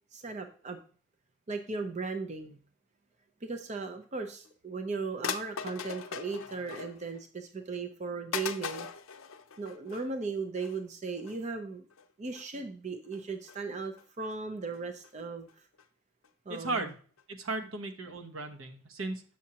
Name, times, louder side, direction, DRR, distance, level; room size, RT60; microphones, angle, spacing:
voice 1, 0.1-0.8 1.5-2.6 3.4-8.9 9.6-11.8 12.2-15.7 16.5-16.9 17.6-17.7, right 4 dB, 35° right, 6 dB, 0.5 m, -37 dB
sound 1, 4.4-4.5 5.2-7.2 7.6-7.7 8.3-10.1 10.6-10.8 11.2-11.4 11.9-12.1 12.3-12.5 13.1-13.6 14.0-14.3 14.7-15.1 15.5-15.6 15.8-15.9 16.2-16.3 16.5-16.6 16.9-17.0 17.2-17.3, left 7 dB, 75° left, 0.6 m, -40 dB
voice 2, 16.5-17.0 17.3-19.2, right 3 dB, 75° right, 7 dB, 0.9 m, -36 dB
7.1 x 6.3 x 2.8 m, 0.41 s
head